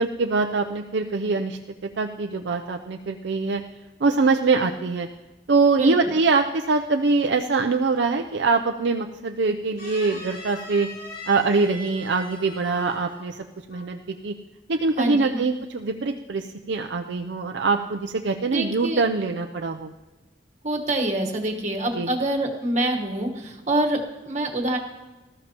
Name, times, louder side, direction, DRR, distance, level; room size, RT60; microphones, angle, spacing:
voice 1, 0.0-1.6 2.0-3.6 4.0-5.1 5.5-10.9 11.3-14.3 14.7-19.9 21.9-22.1, right 4 dB, 75° right, 4 dB, 0.5 m, -23 dB
sound 1, 9.8-13.4 13.7-14.0, left 1 dB, 55° left, 4.3 m, -41 dB
voice 2, 15.0-15.4 18.5-19.0 20.6-24.8, right 1 dB, 40° right, 2 dB, 1.3 m, -25 dB
19.0 x 13.0 x 2.9 m, 1.2 s
head